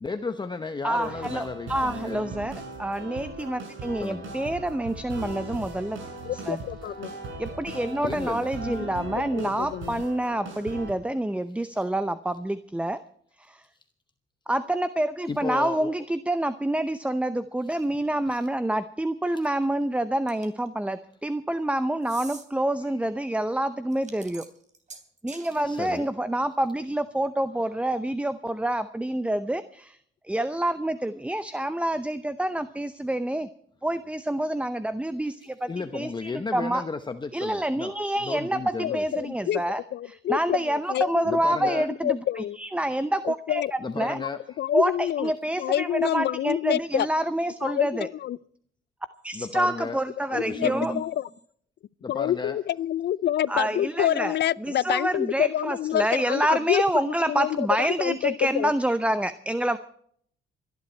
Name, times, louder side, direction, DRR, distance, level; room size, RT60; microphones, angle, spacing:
voice 1, 0.0-2.4 4.0-4.3 7.1-7.2 8.0-8.8 11.6-11.7 15.3-15.9 17.6-17.8 19.3-19.5 22.8-22.9 25.4-26.1 35.2-35.3 35.7-39.0 41.2-41.9 43.8-44.6 49.3-50.0 50.3-51.0 52.0-52.6, left 4 dB, 20° left, 0.9 m, -34 dB
voice 2, 0.8-6.0 6.3-6.6 7.4-13.0 13.5-13.6 14.5-24.4 25.2-30.0 30.3-33.5 33.8-36.8 37.3-39.8 40.3-42.2 42.6-43.6 44.0-44.2 44.7-48.1 49.2-51.0 53.5-54.3 54.6-59.8, right 1 dB, 5° right, 0.7 m, -27 dB
sound 1, 0.9-10.9, right 2 dB, 85° right, 5.6 m, -39 dB
voice 3, 6.2-7.1 9.2-10.0 38.8-39.6 39.9-42.6 43.2-43.7 44.2-44.3 44.6-45.3 45.6-47.1 47.6-48.4 50.2-51.3 52.1-58.7, left 11 dB, 60° left, 0.5 m, -27 dB
sound 2, 20.3-20.7 22.0-22.5 23.9-25.5, right 4 dB, 40° right, 3.3 m, -44 dB
25.5 x 11.0 x 4.4 m
cardioid pair, 90°, 20 cm